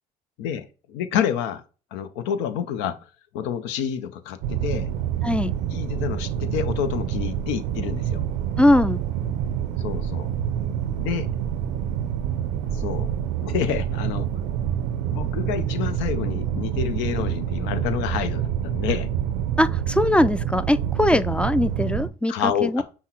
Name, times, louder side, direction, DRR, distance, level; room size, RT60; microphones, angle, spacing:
voice 1, 0.4-1.6 1.9-3.0 3.3-4.9 5.7-8.2 9.8-10.3 11.0-11.3 12.7-13.1 13.4-14.3 15.1-19.1 21.1-21.2 22.3-22.8, left 9 dB, 85° left, 0.6 m, -28 dB
sound 1, 4.4-22.1, right 10 dB, 85° right, 0.5 m, -27 dB
voice 2, 5.2-5.5 8.6-9.0 19.6-22.8, left 1 dB, 5° left, 0.3 m, -21 dB
5.7 x 2.1 x 4.4 m
supercardioid pair, 70°, 18 cm